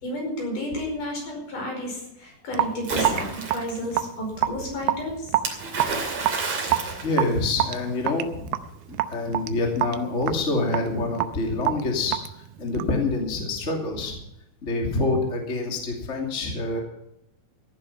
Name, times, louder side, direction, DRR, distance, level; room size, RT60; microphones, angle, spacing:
voice 1, 0.0-5.3, left 1 dB, 60° left, 0 dB, 6.6 m, -32 dB
Raindrop / Drip, 2.5-13.0, right 13 dB, 80° right, 2.4 m, -28 dB
Splash splatter, 2.8-3.8 5.4-7.9, right 4 dB, 45° right, 3.5 m, -30 dB
voice 2, 7.0-8.5 8.9-12.2 12.6-14.2 14.6-16.8, left 2 dB, 20° left, 0 dB, 2.4 m, -26 dB
15.5 x 11.0 x 5.6 m, 0.81 s
omnidirectional pair, 4.2 m